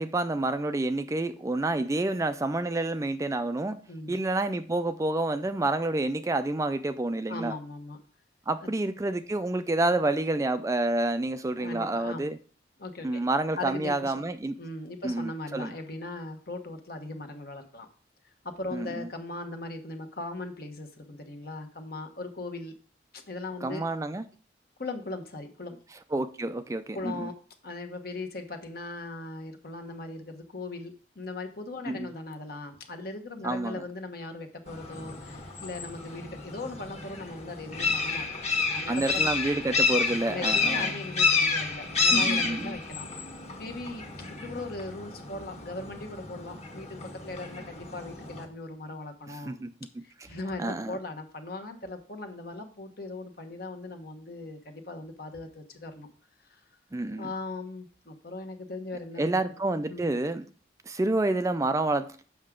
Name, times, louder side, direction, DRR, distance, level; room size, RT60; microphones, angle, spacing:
voice 1, 0.0-3.8 4.1-7.6 8.5-12.4 13.0-14.6 15.0-15.7 18.7-19.1 23.6-24.3 25.9-27.3 31.9-32.1 33.4-33.8 38.9-40.9 42.1-42.8 49.3-49.7 50.2-50.3 50.6-51.0 56.9-57.3 59.2-60.5 60.9-62.1, right 2 dB, 15° right, 0.3 m, -29 dB
voice 2, 3.9-4.2 7.3-8.0 8.6-8.7 11.6-12.3 12.8-13.2 13.6-14.1 14.6-17.9 18.4-22.7 23.1-23.8 24.8-25.8 26.9-27.3 27.6-38.4 38.7-39.3 40.3-43.1 43.6-49.6 50.0-56.1 56.5-56.6 57.2-59.4 59.9-60.1, left 2 dB, 55° left, 1.2 m, -39 dB
sound 1, 34.7-48.5, left 4 dB, 35° left, 1.4 m, -30 dB
7.5 x 5.8 x 3.7 m
head